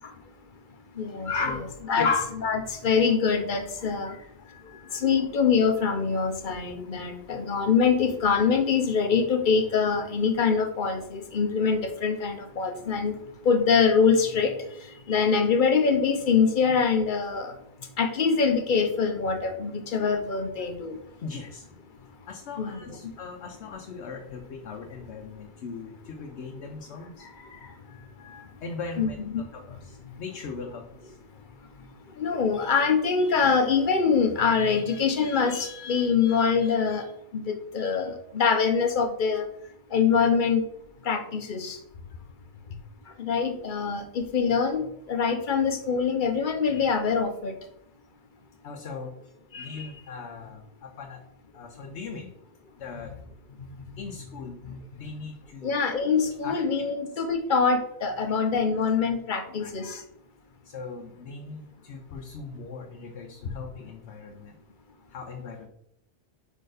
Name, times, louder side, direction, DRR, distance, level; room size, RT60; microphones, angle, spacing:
voice 1, 1.0-4.2 4.9-13.2 13.4-14.6 15.1-17.5 18.0-21.0 22.6-23.0 29.0-29.4 32.2-37.1 37.3-39.4 39.9-40.6 41.1-41.8 43.2-47.6 49.5-49.9 55.6-60.0, left 5 dB, 50° left, 6 dB, 0.9 m, -24 dB
voice 2, 3.8-5.0 21.2-21.6 22.3-29.2 29.5-31.1 42.7-42.8 48.6-49.1 49.6-51.2 51.5-52.3 52.8-53.1 54.0-55.8 56.4-56.9 59.6-59.7 60.6-64.5 65.1-65.7, left 4 dB, 75° left, 2 dB, 1.0 m, -40 dB
5.0 x 4.4 x 4.9 m, 0.75 s
omnidirectional pair, 1.2 m